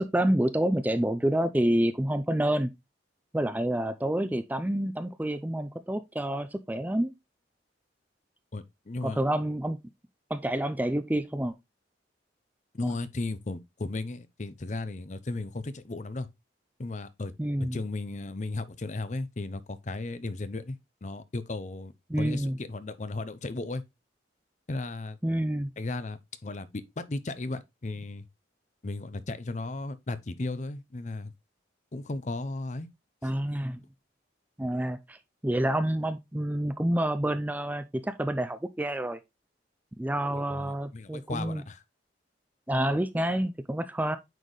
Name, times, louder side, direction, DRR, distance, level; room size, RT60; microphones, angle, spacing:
voice 1, 0.0-2.7 3.3-7.1 9.0-9.8 10.3-11.5 12.8-12.9 17.4-17.8 22.1-22.6 25.2-25.7 33.2-33.8 34.6-35.2 35.4-39.2 40.0-41.6 42.7-44.2, right 1 dB, 10° right, 0.4 m, -28 dB
voice 2, 8.5-9.2 12.7-16.3 16.8-17.3 17.6-21.9 22.2-23.8 24.7-25.2 25.8-28.3 28.8-31.3 31.9-32.9 33.2-33.3 40.3-41.8, left 2 dB, 40° left, 0.6 m, -35 dB
9.0 x 4.2 x 3.2 m
head